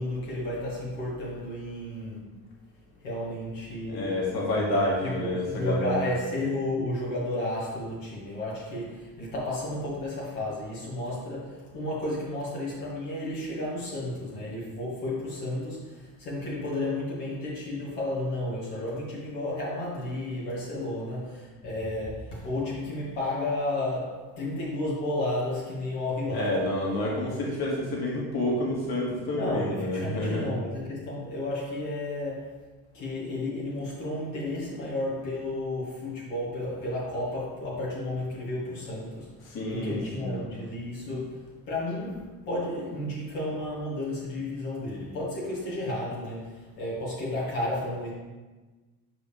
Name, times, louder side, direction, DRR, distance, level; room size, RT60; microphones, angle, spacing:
voice 1, 0.0-2.3 3.0-4.2 5.0-26.7 29.3-32.5 32.9-48.1, left 1 dB, 90° left, -7 dB, 2.1 m, -32 dB
voice 2, 3.8-6.0 26.3-30.5 39.4-40.4, left 1 dB, 60° left, -4 dB, 2.1 m, -29 dB
8.4 x 5.0 x 3.4 m, 1.3 s
supercardioid pair, 60°, 44 cm